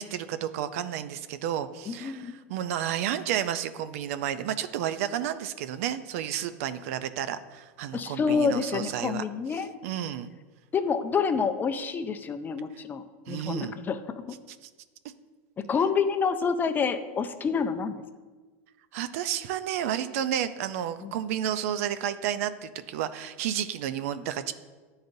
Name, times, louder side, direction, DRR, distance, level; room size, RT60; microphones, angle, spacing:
voice 1, 0.0-9.2 9.8-10.3 13.3-13.8 14.6-14.7 18.9-24.5, right 10 dB, 70° right, 12 dB, 0.4 m, -31 dB
voice 2, 1.9-2.3 7.9-9.7 10.7-14.4 15.6-18.0 21.0-21.1, left 5 dB, 25° left, 9 dB, 0.4 m, -28 dB
9.4 x 3.9 x 2.6 m, 1.4 s
supercardioid pair, 110°, 8 cm